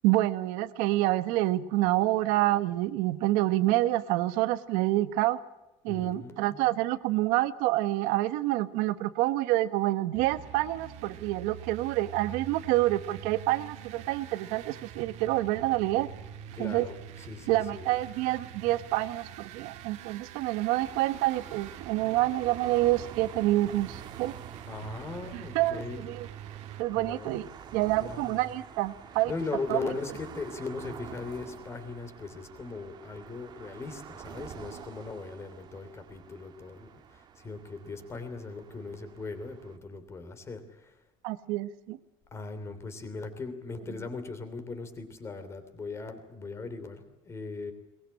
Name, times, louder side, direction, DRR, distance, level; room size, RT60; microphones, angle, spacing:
voice 1, 0.0-5.4 5.8-16.1 16.6-16.9 17.5-24.3 25.3-26.3 26.8-29.3 29.7-29.8 41.2-42.0, right 16 dB, 85° right, 12 dB, 1.2 m, -27 dB
voice 2, 5.9-6.7 16.5-17.9 24.7-26.1 26.9-27.4 28.0-28.4 29.3-41.0 42.3-47.7, left 3 dB, 20° left, 9 dB, 3.0 m, -39 dB
sound 1, 10.1-26.8, right 11 dB, 55° right, 1.9 m, -45 dB
sound 2, 20.8-39.8, right 8 dB, 30° right, 1.6 m, -48 dB
22.5 x 20.5 x 8.6 m, 0.99 s
cardioid pair, 175°, 14 cm